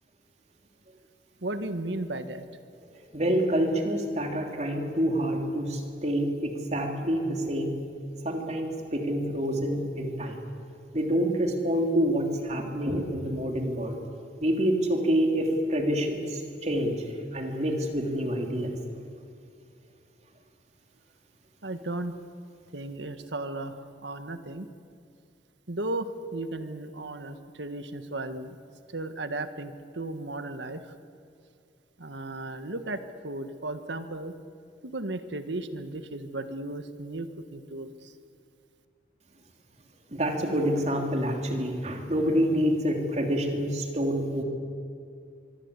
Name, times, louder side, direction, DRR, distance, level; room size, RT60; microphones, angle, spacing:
voice 1, 1.4-2.4 21.6-22.1 22.7-23.7 24.0-24.6 25.7-28.6 28.9-30.8 32.0-34.3 34.8-37.3 37.5-37.9, right 2 dB, 85° right, 9 dB, 1.6 m, -35 dB
voice 2, 2.8-7.7 8.2-10.4 10.9-14.0 14.4-18.8 40.1-44.4, equal, 40° right, 3 dB, 3.2 m, -27 dB
24.5 x 23.5 x 8.4 m, 2.3 s
head